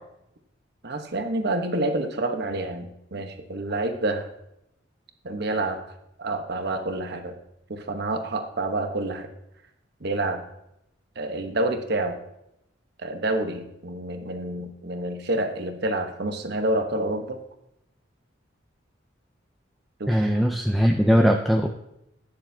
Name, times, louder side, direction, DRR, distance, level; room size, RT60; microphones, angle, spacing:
voice 1, 0.8-4.3 5.2-5.8 6.2-7.3 7.7-9.3 10.0-10.4 11.2-12.2 13.0-17.4 20.0-20.3, right 2 dB, 55° right, 6 dB, 1.1 m, -28 dB
voice 2, 20.1-21.7, equal, ahead, 3 dB, 0.5 m, -20 dB
11.5 x 9.9 x 2.8 m, 0.82 s
head